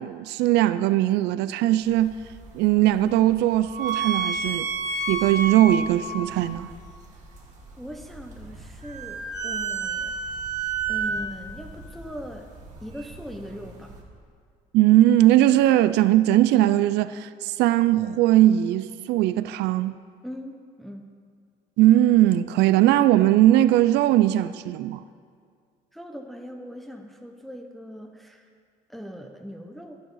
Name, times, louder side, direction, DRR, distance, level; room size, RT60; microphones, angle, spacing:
voice 1, 0.0-2.2 2.5-4.7 5.1-6.7 14.7-19.9 21.8-25.0, right 14 dB, 85° right, 0.4 m, -19 dB
sound 1, 1.8-14.0, right 4 dB, 45° right, 2.3 m, -32 dB
voice 2, 7.8-10.2 10.9-12.5 12.8-14.0 20.2-21.0 25.9-28.5 28.9-30.0, equal, ahead, 0.9 m, -40 dB
12.0 x 11.0 x 5.6 m
cardioid pair, 110°, 17 cm